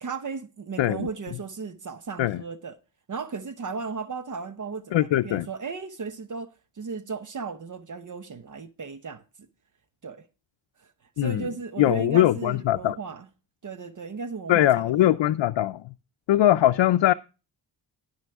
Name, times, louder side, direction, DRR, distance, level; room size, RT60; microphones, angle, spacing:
voice 1, 0.0-2.8 3.1-9.5 10.0-10.3 10.8-10.9 11.2-13.3 13.6-15.1 16.7-16.8, right 5 dB, 45° right, 1.0 m, -36 dB
voice 2, 4.9-5.5 11.2-11.5 11.8-13.0 14.5-15.9 16.3-17.1, left 13 dB, 85° left, 0.5 m, -21 dB
17.0 x 6.3 x 3.5 m
wide cardioid pair, 135°, 43 cm